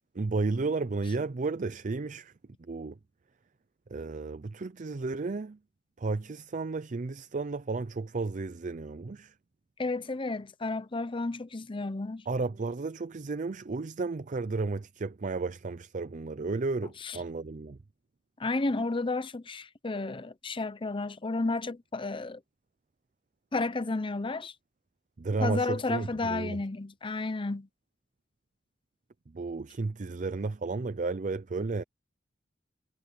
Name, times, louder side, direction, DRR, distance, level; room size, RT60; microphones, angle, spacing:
voice 1, 0.1-2.3 2.6-3.0 3.9-5.6 6.0-9.3 12.3-17.8 25.2-26.6 29.3-31.8, right 3 dB, 40° right, 0.5 m, -33 dB
voice 2, 9.8-12.2 17.0-17.2 18.4-22.4 23.5-24.5 25.4-27.7, left 3 dB, 25° left, 0.7 m, -32 dB
head